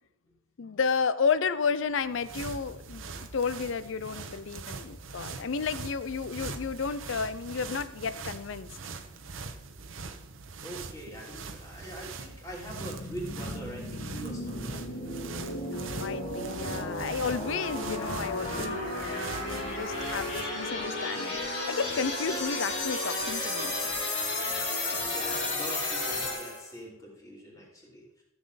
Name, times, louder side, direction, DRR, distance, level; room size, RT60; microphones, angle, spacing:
voice 1, 0.6-3.0 3.3-8.7 15.7-19.3 19.7-23.7, left 5 dB, 75° left, 14 dB, 0.5 m, -32 dB
sound 1, 1.9-20.7, right 4 dB, 80° right, 0.9 m, -42 dB
voice 2, 10.6-15.1 24.3-28.0, equal, 15° left, -4 dB, 3.0 m, -43 dB
sound 2, 12.7-26.7, left 2 dB, 55° left, 3.2 m, -33 dB
13.5 x 7.2 x 4.1 m, 0.89 s
head